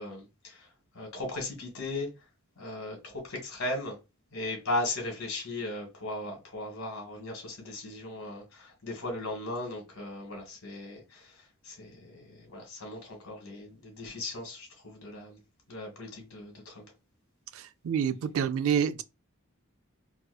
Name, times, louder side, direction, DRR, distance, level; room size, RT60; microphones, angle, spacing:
voice 1, 0.0-2.1 2.6-4.0 4.3-15.4 15.7-16.9, left 2 dB, 75° left, 1.7 m, -37 dB
voice 2, 17.5-19.0, right 8 dB, 70° right, 0.3 m, -28 dB
4.3 x 2.3 x 2.3 m
head